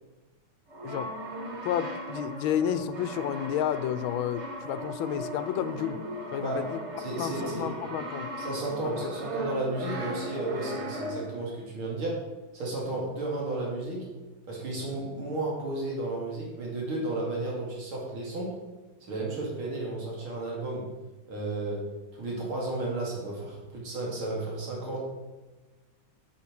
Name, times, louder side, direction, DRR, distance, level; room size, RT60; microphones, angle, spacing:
Brass instrument, 0.7-11.5, equal, 35° right, 1.6 m, -37 dB
voice 1, 1.6-6.0 6.3-6.8 7.2-8.3 8.8-8.9, left 9 dB, 80° left, 12 dB, 1.4 m, -31 dB
voice 2, 7.0-7.7 8.4-12.2 12.5-14.1 14.5-18.5 19.1-20.9 21.3-21.9 22.1-25.0, right 2 dB, 90° right, -3 dB, 3.5 m, -33 dB
8.7 x 7.8 x 6.2 m, 1.2 s
omnidirectional pair, 2.2 m